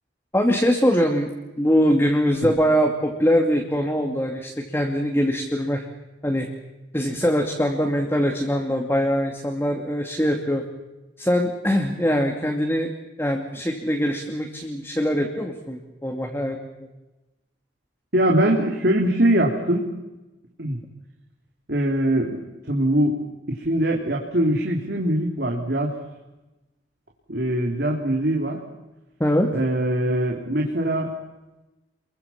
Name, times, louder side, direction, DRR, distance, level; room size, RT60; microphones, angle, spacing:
voice 1, 0.3-1.3 1.6-5.8 6.2-6.5 6.9-10.6 11.2-12.9 13.2-16.9 29.2-29.5, equal, 10° left, 2 dB, 2.5 m, -22 dB
voice 2, 18.1-19.8 20.6-20.8 21.7-22.4 22.7-23.2 23.5-25.9 27.3-28.6 29.5-31.1, right 1 dB, 55° right, 0 dB, 3.6 m, -22 dB
29.0 x 23.0 x 7.3 m, 1.0 s
head